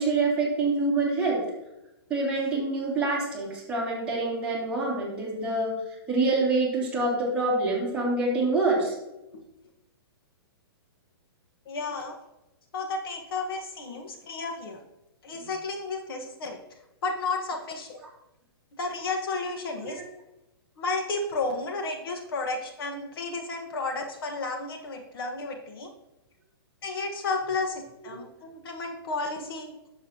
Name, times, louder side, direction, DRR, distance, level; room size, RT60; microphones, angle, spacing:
voice 1, 0.0-1.4 2.1-5.7 6.1-8.9 19.8-19.9, right 3 dB, 10° right, -7 dB, 2.7 m, -26 dB
voice 2, 11.6-12.2 12.7-14.8 15.2-16.6 17.0-18.0 18.7-20.0 20.8-25.9 26.8-29.7, left 3 dB, 60° left, 4 dB, 1.4 m, -32 dB
9.8 x 7.3 x 2.9 m, 0.93 s
hypercardioid pair, 160°, 13 cm